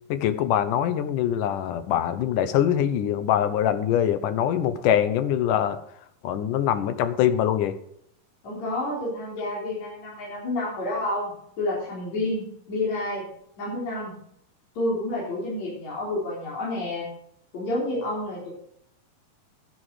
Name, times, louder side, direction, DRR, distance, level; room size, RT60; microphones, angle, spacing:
voice 1, 0.1-5.8 6.2-7.8, left 10 dB, 75° left, 12 dB, 2.3 m, -23 dB
voice 2, 8.4-13.2 13.6-14.1 14.8-17.1 17.5-18.5, left 1 dB, 55° left, -6 dB, 5.3 m, -29 dB
11.5 x 11.0 x 4.8 m, 0.72 s
omnidirectional pair, 3.9 m